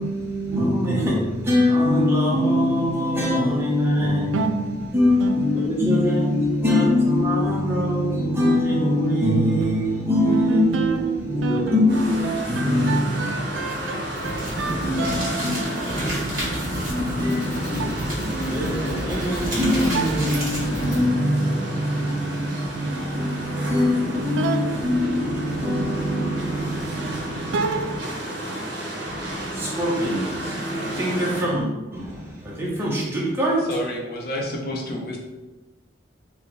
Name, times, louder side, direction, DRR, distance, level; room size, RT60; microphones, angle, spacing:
voice 1, 0.0-14.0 14.6-27.6 29.0-33.7, left 1 dB, 15° right, 0.7 m, -23 dB
voice 2, 0.5-1.3 4.3-5.8 6.1-6.3 10.3-16.8 17.8-18.2 19.9-20.4 24.4-28.9, right 4 dB, 75° right, 0.3 m, -31 dB
sound 1, 11.9-31.4, right 1 dB, 60° right, 0.8 m, -32 dB
sound 2, 13.5-16.9 18.0-18.6 19.1-20.8, right 1 dB, 45° right, 1.4 m, -34 dB
sound 3, 14.0-21.0, right 1 dB, 20° left, 1.0 m, -30 dB
voice 3, 28.5-28.8 33.7-35.2, left 1 dB, 50° left, 0.7 m, -30 dB
3.1 x 2.1 x 3.8 m
head